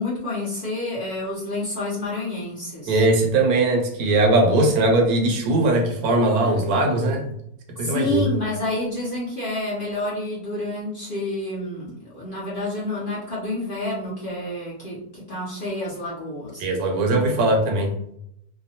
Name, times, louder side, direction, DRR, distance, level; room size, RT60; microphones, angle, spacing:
voice 1, 0.0-3.0 6.4-6.7 7.8-16.6, left 2 dB, 45° left, -7 dB, 0.7 m, -29 dB
voice 2, 2.9-7.3 7.8-8.3 16.6-17.9, right 2 dB, 75° right, 2 dB, 1.1 m, -20 dB
2.8 x 2.1 x 2.7 m, 0.74 s
omnidirectional pair, 1.7 m